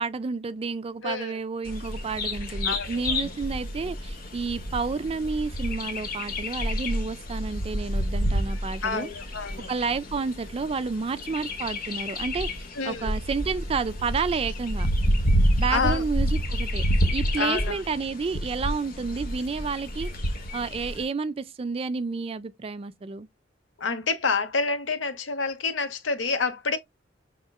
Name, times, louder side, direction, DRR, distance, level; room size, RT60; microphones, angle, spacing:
voice 1, 0.0-9.1 9.7-12.5 12.8-14.9 15.6-16.8 17.1-20.1 20.5-23.3, right 4 dB, 30° right, 0.4 m, -30 dB
voice 2, 1.0-1.4 2.6-3.3 8.8-9.7 12.7-13.1 15.7-16.0 17.4-17.8 23.8-26.8, left 4 dB, 75° left, 0.9 m, -28 dB
Bird vocalization bird call bird song, 1.6-21.0, equal, 50° left, 1.1 m, -29 dB
5.3 x 3.6 x 2.3 m
head